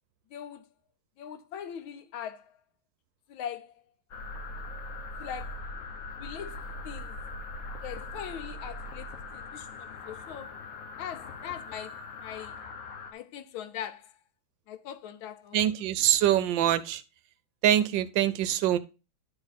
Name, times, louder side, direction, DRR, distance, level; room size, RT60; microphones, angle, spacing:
voice 1, 0.3-0.7 1.2-2.5 3.3-3.7 5.2-5.6 6.2-7.2 7.8-10.5 11.0-12.6 13.1-14.1 14.7-15.8, left 9 dB, 80° left, 1.5 m, -41 dB
sound 1, 4.1-13.1, left 3 dB, 55° left, 1.1 m, -41 dB
voice 2, 15.5-17.0 17.6-18.8, right 11 dB, 75° right, 1.2 m, -24 dB
11.0 x 3.9 x 4.0 m
omnidirectional pair, 2.1 m